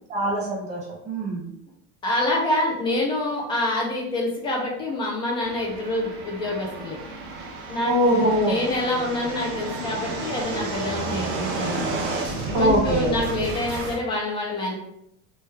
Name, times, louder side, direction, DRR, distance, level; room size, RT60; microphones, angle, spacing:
voice 1, 0.1-0.8 1.1-1.5 7.8-8.5 12.5-13.1, right 1 dB, 20° right, -3 dB, 0.7 m, -22 dB
voice 2, 2.0-7.0 7.7-11.8 12.6-14.7, left 1 dB, 15° left, -2 dB, 0.3 m, -26 dB
sound 1, 5.4-14.0, right 2 dB, 60° right, 0.9 m, -31 dB
3.2 x 2.2 x 3.2 m, 0.78 s
cardioid pair, 175°, 35 cm